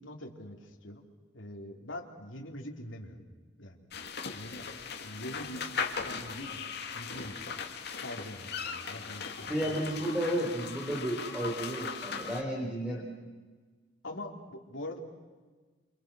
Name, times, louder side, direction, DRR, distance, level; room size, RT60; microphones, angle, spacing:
voice 1, 0.0-3.2 3.6-3.9 4.3-4.7 5.0-5.6 5.9-6.6 6.9-7.5 8.0-10.2 14.0-15.0, left 1 dB, 80° left, 2 dB, 3.2 m, -44 dB
sound 1, 3.9-12.4, left 6 dB, 60° left, 2.2 m, -38 dB
voice 2, 9.5-13.0, right 1 dB, 5° right, -3 dB, 4.5 m, -32 dB
28.5 x 27.5 x 6.2 m, 1.4 s
head